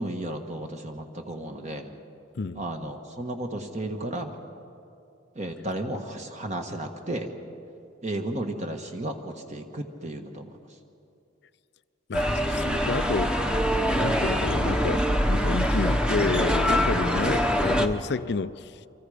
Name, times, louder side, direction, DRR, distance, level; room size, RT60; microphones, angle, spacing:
voice 1, 0.0-1.9 2.5-4.4 5.3-7.3 8.0-10.5, right 1 dB, 35° right, 1.4 m, -33 dB
voice 2, 12.1-13.4 13.9-18.7, left 4 dB, 60° left, 0.5 m, -30 dB
sound 1, 12.1-17.9, equal, 5° right, 1.0 m, -24 dB
28.5 x 24.5 x 5.0 m
head